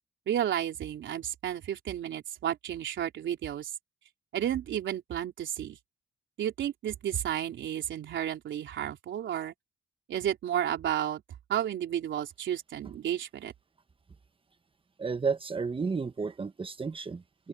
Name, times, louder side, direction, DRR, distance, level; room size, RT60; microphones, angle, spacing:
voice 1, 0.3-3.7 4.3-5.8 6.4-9.5 10.1-11.2 11.5-13.5, right 10 dB, 70° right, 3.7 m, -32 dB
voice 2, 15.0-17.5, right 5 dB, 25° right, 1.3 m, -32 dB
open air
cardioid pair, 90°, 20 cm